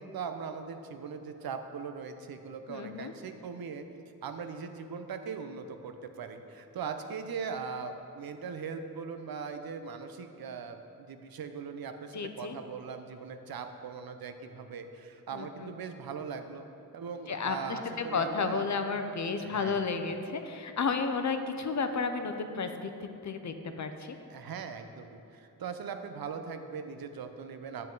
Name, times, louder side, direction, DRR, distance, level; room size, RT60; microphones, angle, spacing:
voice 1, 0.0-3.9 4.2-16.7 16.9-18.7 19.4-19.8 24.3-27.9, right 6 dB, 80° right, 7 dB, 0.6 m, -40 dB
voice 2, 2.7-3.1 12.1-12.6 15.3-15.7 17.3-24.2, left 4 dB, 55° left, 7 dB, 0.6 m, -32 dB
7.6 x 7.5 x 3.9 m, 2.7 s
wide cardioid pair, 85°, 35 cm